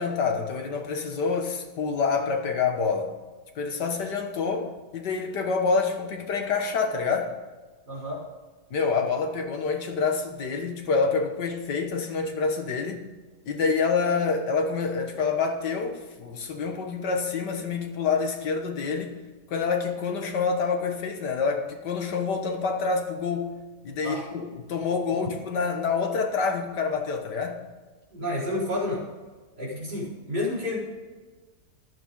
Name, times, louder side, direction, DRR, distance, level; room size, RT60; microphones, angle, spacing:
voice 1, 0.0-3.1 3.6-7.3 8.7-13.0 13.5-19.2 19.5-23.6 23.8-27.6, left 5 dB, 85° left, 4 dB, 2.0 m, -27 dB
voice 2, 7.9-8.2 24.0-24.2 28.1-29.0 29.6-30.8, left 1 dB, 25° right, -6 dB, 4.7 m, -30 dB
14.5 x 11.0 x 3.8 m, 1.3 s
omnidirectional pair, 1.8 m